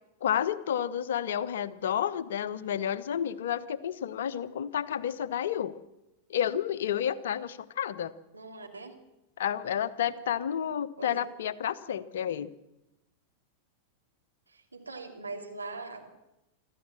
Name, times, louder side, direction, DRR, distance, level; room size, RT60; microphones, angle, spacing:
voice 1, 0.2-5.7 6.3-8.1 9.4-12.5, left 9 dB, 60° left, 14 dB, 1.0 m, -30 dB
voice 2, 8.3-8.9 11.0-11.2 14.5-16.1, right 3 dB, 80° right, 2 dB, 3.0 m, -41 dB
25.0 x 14.0 x 7.5 m, 0.92 s
figure-of-eight pair, 90°, 0 cm